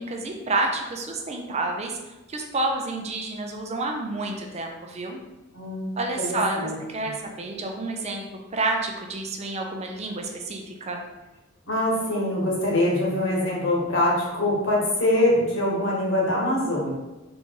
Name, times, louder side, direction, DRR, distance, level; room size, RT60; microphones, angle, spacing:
voice 1, 0.0-2.0 2.3-5.2 6.0-8.2 8.5-11.0, right 2 dB, 30° right, 2 dB, 0.5 m, -29 dB
voice 2, 5.5-5.9 6.2-7.1 11.7-16.9, left 1 dB, 65° left, -3 dB, 1.3 m, -24 dB
3.9 x 3.1 x 3.6 m, 1.1 s
head